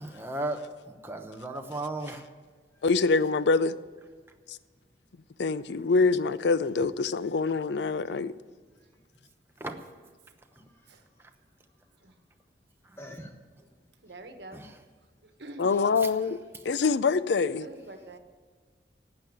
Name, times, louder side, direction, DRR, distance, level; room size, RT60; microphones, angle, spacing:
voice 1, 0.0-2.2 8.1-8.2 9.6-9.8 14.5-14.7 16.0-16.1, right 2 dB, 15° right, 0.9 m, -35 dB
voice 2, 2.8-3.7 5.4-8.3 15.6-16.4 16.7-17.7, left 4 dB, 75° left, 0.4 m, -25 dB
voice 3, 3.4-3.8 10.9-11.0 12.0-12.1 14.0-14.6 15.4-15.7 17.6-18.2, right 2 dB, 75° right, 1.4 m, -46 dB
voice 4, 10.5-10.9 13.0-13.3 13.6-13.7 15.7-15.9, left 1 dB, 15° left, 1.4 m, -50 dB
12.0 x 8.7 x 9.7 m
head